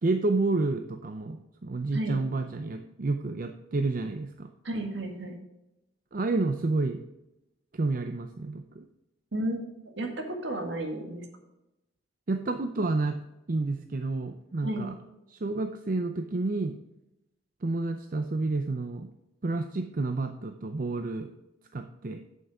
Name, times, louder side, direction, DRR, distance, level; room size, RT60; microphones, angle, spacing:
voice 1, 0.0-4.5 6.1-7.0 7.7-8.8 12.3-13.2 13.5-14.9 15.3-16.8 17.6-19.1 19.4-21.3 21.7-22.2, right 3 dB, 45° right, 6 dB, 0.5 m, -30 dB
voice 2, 4.6-5.4 9.3-9.7 10.0-11.2 14.6-14.9, right 1 dB, 70° right, 4 dB, 1.8 m, -32 dB
8.0 x 7.9 x 4.8 m, 0.93 s
head